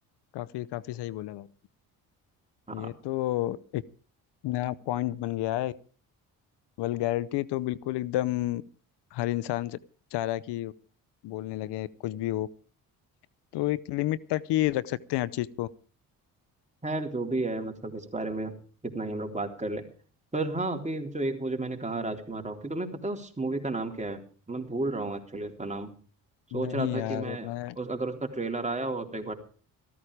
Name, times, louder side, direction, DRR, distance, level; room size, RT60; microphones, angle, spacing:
voice 1, 0.3-1.5 2.7-3.8 4.4-5.7 6.8-8.6 9.1-9.8 10.1-10.7 11.2-12.5 13.5-15.7 26.5-27.8, left 15 dB, 75° left, 19 dB, 0.8 m, -30 dB
voice 2, 16.8-18.5 18.8-19.9 20.3-24.2 24.5-25.9 26.5-27.5 27.8-29.3, right 2 dB, 15° right, 3 dB, 3.8 m, -32 dB
15.0 x 13.5 x 5.0 m, 0.40 s
supercardioid pair, 65°, 41 cm